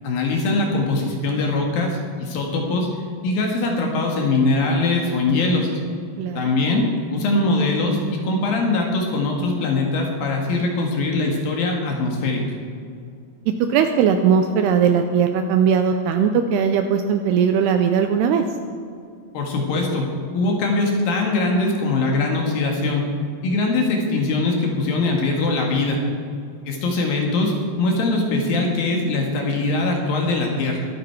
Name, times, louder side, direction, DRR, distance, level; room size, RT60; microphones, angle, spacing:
voice 1, 0.0-2.9 3.2-5.7 6.4-12.4 19.3-20.1 20.3-23.0 23.4-26.0 26.7-30.9, left 2 dB, 60° left, 1 dB, 2.9 m, -22 dB
voice 2, 13.7-18.4, right 7 dB, 85° right, 7 dB, 2.4 m, -19 dB
21.5 x 8.9 x 4.6 m, 2.3 s
omnidirectional pair, 5.2 m